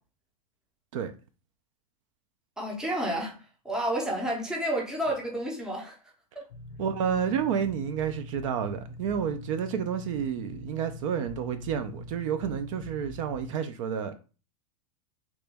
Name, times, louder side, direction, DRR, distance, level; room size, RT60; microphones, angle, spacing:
voice 1, 2.6-3.4 3.6-6.0 6.4-6.5, right 1 dB, 5° right, 0.5 m, -30 dB
sound 1, 6.5-13.6, left 1 dB, 55° left, 0.5 m, -44 dB
voice 2, 6.8-14.1, right 8 dB, 60° right, 0.4 m, -30 dB
3.0 x 2.2 x 3.3 m
supercardioid pair, 160°, 19 cm